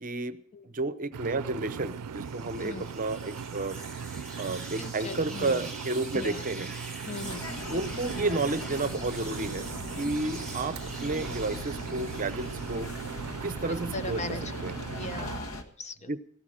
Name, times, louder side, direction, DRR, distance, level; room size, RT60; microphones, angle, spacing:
voice 1, 0.0-0.4 0.6-3.8 4.4-6.7 7.7-9.7 10.0-10.7 11.0-12.9 13.4-14.2 14.6-14.7 16.1-16.2, right 2 dB, 35° right, 14 dB, 0.8 m, -31 dB
Engine, 1.1-15.4, right 6 dB, 90° right, 0.5 m, -39 dB
sound 1, 1.8-13.5 13.9-14.9, right 2 dB, 5° left, 3.9 m, -45 dB
voice 2, 4.8-5.7 6.1-6.4 7.1-7.5 13.9-14.4 15.0-16.1, left 3 dB, 30° left, 11 dB, 0.7 m, -38 dB
sound 2, 7.2-15.6, left 1 dB, 65° left, 1.7 m, -40 dB
17.5 x 13.0 x 5.0 m, 0.63 s
head